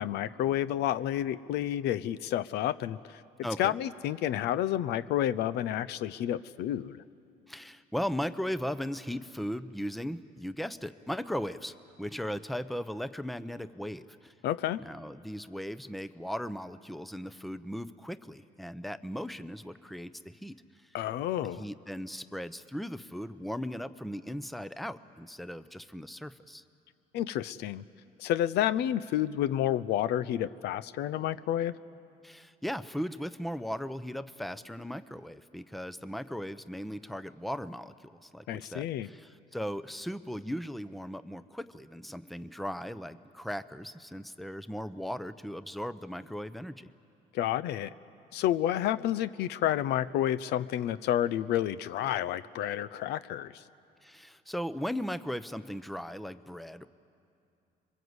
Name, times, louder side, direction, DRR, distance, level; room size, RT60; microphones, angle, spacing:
voice 1, 0.0-3.2 3.6-7.0 14.4-14.8 20.9-21.6 27.1-27.8 28.2-31.7 38.5-39.1 47.3-47.9 48.3-53.6, left 12 dB, 80° left, 15 dB, 0.6 m, -30 dB
voice 2, 3.4-3.7 7.5-14.3 14.8-20.5 21.4-26.6 32.2-46.9 54.0-56.9, equal, ahead, 13 dB, 0.7 m, -37 dB
26.5 x 23.0 x 8.0 m, 2.6 s
cardioid pair, 110°, 17 cm